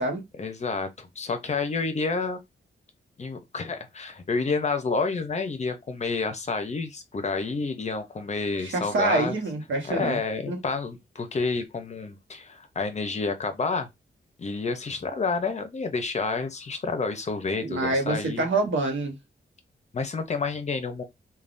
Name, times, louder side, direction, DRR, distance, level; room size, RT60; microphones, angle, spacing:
voice 1, 0.4-2.4 3.2-9.4 9.9-13.9 14.4-18.5 19.9-21.0, left 4 dB, 35° left, 0.6 m, -29 dB
voice 2, 8.6-10.2 10.5-10.6 17.6-19.2, right 2 dB, 70° right, 1.1 m, -26 dB
3.4 x 2.3 x 2.5 m
wide cardioid pair, 155°, 20 cm